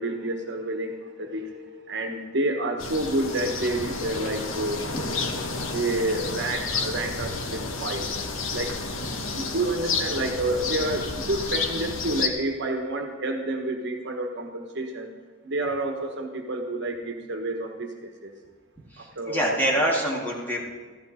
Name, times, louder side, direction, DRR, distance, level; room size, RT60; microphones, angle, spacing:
voice 1, 0.0-4.8 5.6-8.1 8.5-8.7 9.3-15.1 15.4-18.3 19.0-19.6, right 2 dB, 60° right, 4 dB, 1.3 m, -29 dB
sound 1, 2.8-12.3, left 4 dB, 75° left, 1.2 m, -31 dB
voice 2, 19.2-20.7, equal, 10° left, -4 dB, 2.4 m, -25 dB
14.5 x 13.5 x 4.3 m, 1.4 s
head